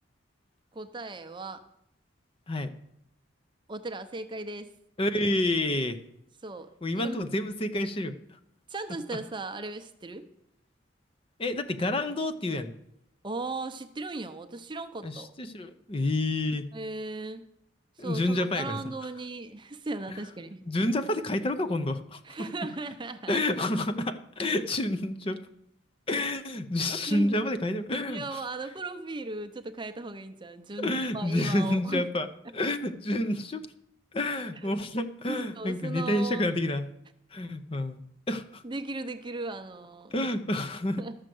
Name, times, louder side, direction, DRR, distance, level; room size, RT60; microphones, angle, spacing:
voice 1, 0.7-1.6 3.7-4.7 6.4-7.2 8.7-10.3 11.9-12.1 13.2-15.3 16.7-17.4 18.0-20.6 22.3-23.4 27.1-27.5 28.1-32.0 34.6-34.7 35.3-36.5 38.6-40.3 41.0-41.2, right 2 dB, 25° right, 9 dB, 0.6 m, -37 dB
voice 2, 5.0-6.0 6.8-8.2 11.4-12.7 15.0-16.7 18.0-18.8 20.1-20.2 20.6-22.2 23.3-25.4 26.1-28.4 30.8-32.3 32.5-33.6 34.1-36.9 37.3-38.0 38.3-38.6 40.1-41.0, left 1 dB, 30° left, 10 dB, 0.6 m, -29 dB
12.5 x 6.4 x 7.7 m, 0.78 s
head